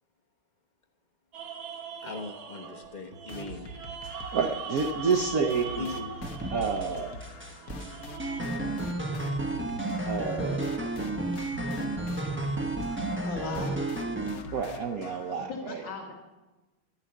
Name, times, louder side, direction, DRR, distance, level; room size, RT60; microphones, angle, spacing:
sound 1, 1.3-8.4, right 6 dB, 80° right, 2.0 m, -41 dB
voice 1, 2.0-3.7 5.8-6.1, left 3 dB, 30° left, 2 dB, 0.9 m, -39 dB
sound 2, 3.3-15.4, left 2 dB, 55° left, 1.2 m, -45 dB
voice 2, 4.3-5.9 6.5-7.2 10.1-10.9 14.5-15.8, right 5 dB, 60° right, 3 dB, 0.9 m, -29 dB
sound 3, 6.2-6.9 7.2-14.4, right 2 dB, 15° right, 0.4 m, -32 dB
voice 3, 13.2-13.7 15.5-16.1, left 3 dB, 70° left, -4 dB, 2.9 m, -37 dB
11.0 x 7.3 x 9.4 m, 1.1 s
omnidirectional pair, 2.2 m